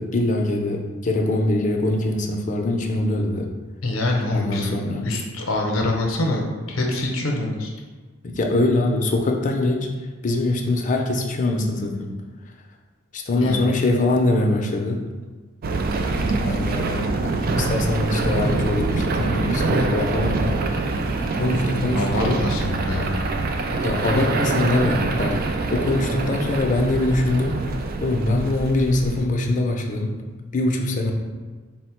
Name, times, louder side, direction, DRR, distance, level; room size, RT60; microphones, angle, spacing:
voice 1, 0.0-3.5 4.3-5.1 8.2-9.9 10.2-12.1 13.1-15.0 16.3-20.8 21.3-22.4 23.8-27.6 28.0-30.2 30.5-31.1, left 2 dB, 40° left, 2 dB, 0.5 m, -23 dB
voice 2, 3.8-4.8 5.0-6.4 6.7-7.7 13.4-13.7 21.9-23.2, left 2 dB, 80° left, 1 dB, 0.7 m, -25 dB
sound 1, 15.6-29.3, right 3 dB, 45° right, 0.3 m, -24 dB
4.2 x 2.1 x 4.4 m, 1.4 s
head